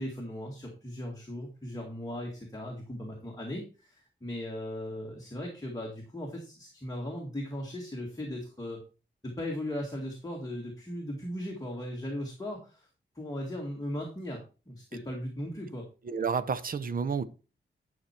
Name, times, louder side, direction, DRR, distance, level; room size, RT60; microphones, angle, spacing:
voice 1, 0.0-8.8 9.2-12.9 13.2-15.9, left 1 dB, 20° left, 2.0 m, -38 dB
voice 2, 16.0-17.2, right 6 dB, 50° right, 0.7 m, -30 dB
11.0 x 5.9 x 4.4 m
wide cardioid pair, 155°, 19 cm